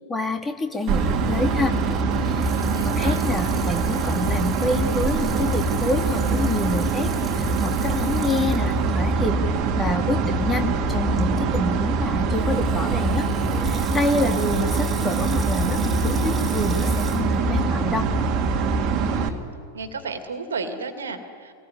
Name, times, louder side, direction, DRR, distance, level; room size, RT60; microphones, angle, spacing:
voice 1, 0.1-1.8 2.2-2.5 2.8-9.4 9.8-13.3 13.6-18.1, left 2 dB, 15° left, 4 dB, 2.3 m, -27 dB
Water tap faucet / Sink (filling or washing), 0.7-9.1 9.6-9.7 10.5-10.7 12.3-17.2, right 3 dB, 15° right, 3.7 m, -41 dB
sound 1, 0.9-19.3, right 4 dB, 35° right, 2.1 m, -23 dB
voice 2, 2.5-3.2 14.1-14.6 19.0-19.4 19.7-21.5, right 4 dB, 70° right, 8 dB, 2.4 m, -33 dB
25.0 x 19.5 x 9.7 m, 2.3 s
figure-of-eight pair, 90°, 0 cm